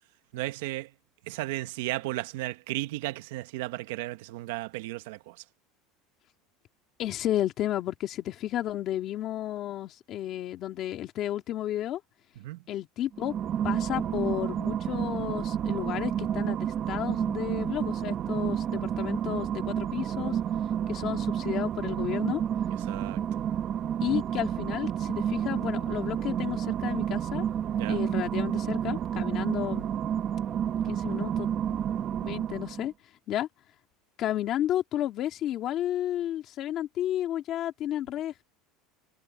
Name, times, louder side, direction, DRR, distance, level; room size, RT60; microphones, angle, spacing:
voice 1, 0.3-0.9 1.3-5.4 12.4-12.6 22.9-23.2 27.8-28.0, right 18 dB, 80° right, 1.2 m, -34 dB
voice 2, 7.0-12.0 12.7-13.3 13.6-20.4 20.9-22.4 24.0-27.5 27.9-29.9 30.9-31.8 32.2-32.9 33.3-33.5 34.2-38.4, left 12 dB, 35° left, 2.4 m, -32 dB
sound 1, 13.1-32.9, right 9 dB, 30° right, 1.0 m, -30 dB
cardioid pair, 175°, 0 cm